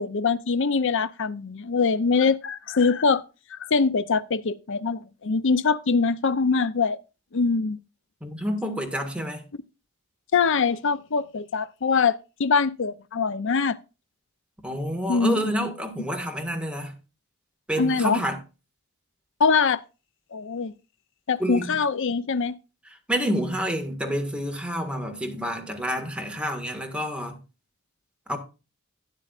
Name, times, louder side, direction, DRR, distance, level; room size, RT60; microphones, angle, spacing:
voice 1, 0.0-3.2 3.5-7.0 7.3-7.8 10.3-13.8 15.1-15.5 17.8-18.2 19.4-19.8 20.3-20.7 21.3-22.6, left 5 dB, 65° left, 0.6 m, -23 dB
voice 2, 8.2-9.4 14.6-16.9 17.7-18.4 21.4-21.7 23.1-27.4 28.3-28.4, equal, 5° right, 1.8 m, -28 dB
12.5 x 9.7 x 2.5 m
head